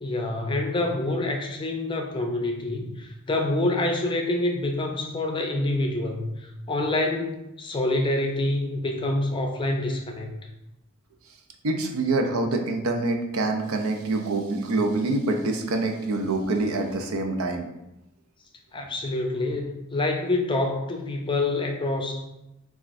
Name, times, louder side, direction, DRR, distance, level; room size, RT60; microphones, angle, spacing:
voice 1, 0.0-10.3 18.7-22.2, left 2 dB, 25° left, 3 dB, 0.5 m, -27 dB
voice 2, 11.6-17.7, right 2 dB, 70° right, 4 dB, 0.6 m, -26 dB
7.2 x 2.4 x 2.5 m, 0.89 s
head